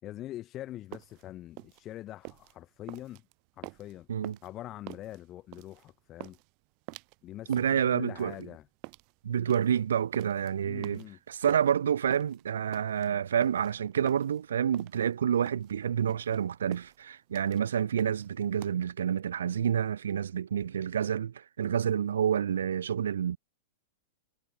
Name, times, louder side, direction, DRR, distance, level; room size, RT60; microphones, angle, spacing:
voice 1, 0.0-3.2 3.6-4.1 4.4-6.4 7.2-8.6 10.6-11.2, left 14 dB, 35° left, 6.7 m, -43 dB
sound 1, 0.7-18.7, right 34 dB, 50° right, 7.2 m, -47 dB
voice 2, 7.5-8.3 9.2-23.4, right 8 dB, 85° right, 2.2 m, -28 dB
hypercardioid pair, 120°, 0 cm